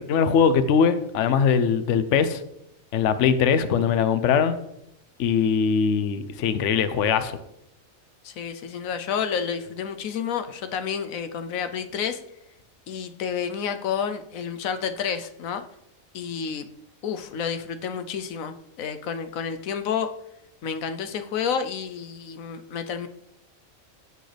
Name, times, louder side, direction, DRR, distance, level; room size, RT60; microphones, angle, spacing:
voice 1, 0.0-2.4 2.9-4.6 5.2-7.4, left 6 dB, 65° left, 11 dB, 1.0 m, -21 dB
voice 2, 8.2-12.2 12.9-15.6 16.1-16.7 17.0-20.1 20.6-23.1, left 7 dB, 85° left, 9 dB, 1.1 m, -30 dB
16.0 x 6.4 x 3.3 m, 0.82 s
omnidirectional pair, 1.4 m